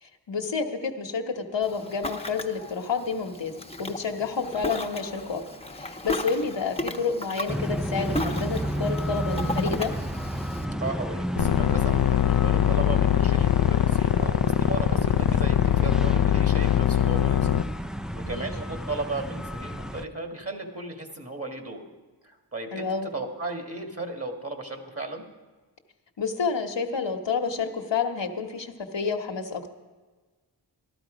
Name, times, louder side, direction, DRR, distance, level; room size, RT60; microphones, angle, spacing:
voice 1, 0.0-3.5 3.8-5.4 5.7-9.9 18.3-18.5 22.7-23.1 26.2-29.7, left 5 dB, 75° left, 3 dB, 1.2 m, -29 dB
Ocean, 1.6-10.6, left 1 dB, 15° left, 1.0 m, -35 dB
sound 1, 7.5-20.1, equal, ahead, 0.5 m, -32 dB
voice 2, 10.8-17.4 18.1-21.8 22.2-25.2, right 2 dB, 30° right, 4 dB, 1.9 m, -35 dB
sound 2, 11.4-17.6, left 11 dB, 60° left, 0.5 m, -22 dB
13.0 x 12.5 x 5.1 m, 1.3 s
cardioid pair, 45°, 44 cm